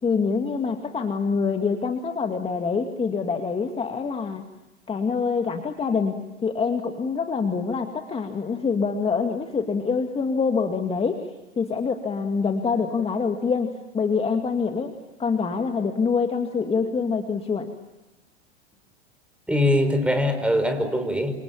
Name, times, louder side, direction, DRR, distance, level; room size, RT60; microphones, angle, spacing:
voice 1, 0.0-4.4 4.9-11.2 11.6-14.9 15.2-17.7, left 5 dB, 15° left, 5 dB, 2.3 m, -25 dB
voice 2, 19.5-21.3, left 1 dB, 5° right, 8 dB, 5.1 m, -22 dB
29.5 x 27.5 x 7.2 m, 1.0 s
hypercardioid pair, 105°, 34 cm